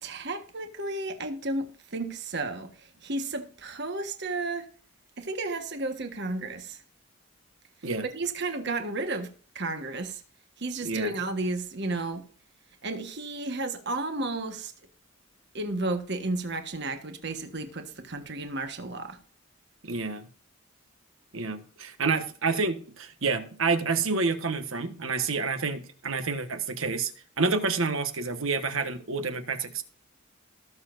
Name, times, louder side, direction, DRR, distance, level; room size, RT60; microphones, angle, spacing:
voice 1, 0.0-4.7 5.2-6.8 8.1-9.3 9.5-10.2 10.6-12.2 12.8-14.7 15.5-19.2, right 2 dB, 55° right, 1.4 m, -33 dB
voice 2, 10.8-11.1 19.8-20.3 21.3-27.1 27.4-29.8, right 4 dB, 70° right, 1.4 m, -28 dB
19.0 x 6.9 x 2.6 m
head